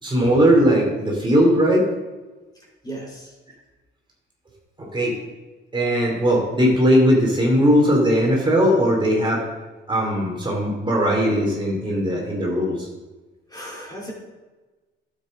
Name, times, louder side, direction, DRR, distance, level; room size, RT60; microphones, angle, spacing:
voice 1, 0.0-1.9 4.8-5.2 5.7-9.4 9.9-12.9, equal, 25° right, -2 dB, 2.8 m, -19 dB
voice 2, 2.8-3.3 13.5-14.1, right 1 dB, 20° left, -4 dB, 3.2 m, -35 dB
12.0 x 7.6 x 3.7 m, 1.2 s
cardioid pair, 90°, 20 cm